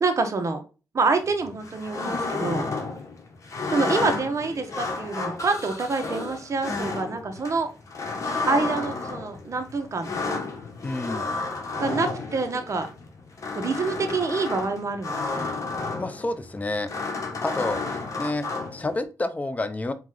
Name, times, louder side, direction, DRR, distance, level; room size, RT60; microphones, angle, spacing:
voice 1, 0.0-0.6 0.9-2.6 3.7-7.7 8.4-10.4 11.8-12.9 13.5-15.5, right 4 dB, 45° right, 6 dB, 0.9 m, -26 dB
sound 1, 1.2-19.0, left 3 dB, 50° left, 1.2 m, -32 dB
voice 2, 10.8-11.3 16.0-16.9 17.4-19.9, left 2 dB, 20° left, 10 dB, 0.5 m, -29 dB
4.2 x 3.0 x 3.8 m, 0.32 s
cardioid pair, 85°, 7 cm